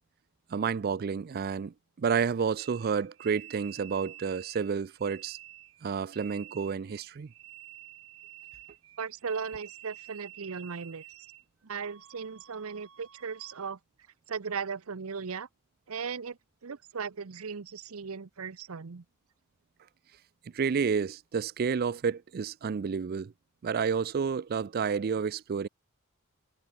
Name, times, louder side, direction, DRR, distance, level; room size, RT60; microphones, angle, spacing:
voice 1, 0.5-5.4 5.8-7.3 20.5-23.3 23.6-25.7, right 6 dB, 45° right, 0.4 m, -30 dB
sound 1, 2.6-11.4 11.8-13.7, right 13 dB, 65° right, 1.2 m, -50 dB
voice 2, 9.0-11.3 11.6-13.8 14.3-15.5 15.9-19.0, right 5 dB, 85° right, 0.7 m, -37 dB
head